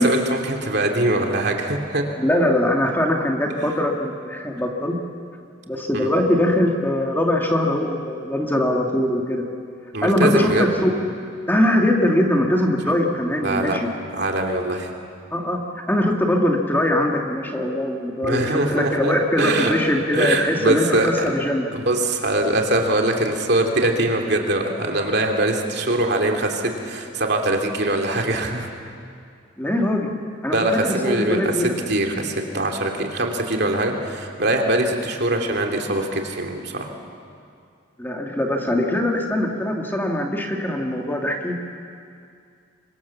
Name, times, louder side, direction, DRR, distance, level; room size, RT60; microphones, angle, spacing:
voice 1, 0.0-2.0 5.9-6.1 9.9-10.6 13.4-13.8 14.1-14.9 18.2-19.7 20.1-21.1 21.7-28.7 30.5-31.5 31.9-36.9, right 1 dB, 55° right, 2 dB, 2.7 m, -22 dB
voice 2, 2.2-5.0 5.7-9.4 10.0-10.9 11.5-13.9 15.3-15.6 15.9-21.7 29.6-30.1 30.4-31.7 38.0-41.5, left 1 dB, 10° left, 1 dB, 1.9 m, -21 dB
26.0 x 24.0 x 7.2 m, 2.4 s
head